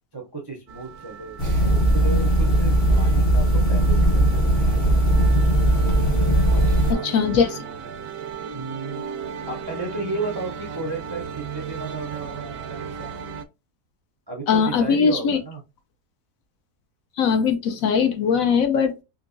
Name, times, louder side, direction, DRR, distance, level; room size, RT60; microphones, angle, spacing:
voice 1, 0.1-5.2 6.5-7.1 8.5-9.0 9.5-13.1 14.3-15.6, right 3 dB, 35° right, 0.4 m, -34 dB
sound 1, 0.7-13.4, right 7 dB, 70° right, 0.9 m, -36 dB
sound 2, 1.4-6.9, right 1 dB, 40° left, 1.0 m, -18 dB
voice 2, 6.9-7.6 14.5-15.4 17.2-19.0, left 6 dB, 65° left, 1.0 m, -20 dB
3.7 x 2.7 x 2.5 m
omnidirectional pair, 1.7 m